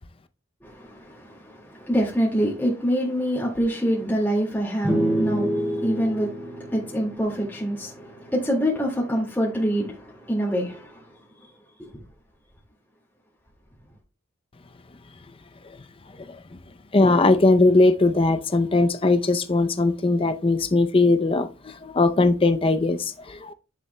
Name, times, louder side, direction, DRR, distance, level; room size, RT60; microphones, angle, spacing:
voice 1, 0.6-11.0 11.8-11.9, equal, 10° left, 2.0 m, -26 dB
sound 1, 4.8-8.4, right 1 dB, 10° right, 2.1 m, -28 dB
voice 2, 16.9-23.5, left 2 dB, 25° left, 0.5 m, -20 dB
9.9 x 7.0 x 2.2 m
head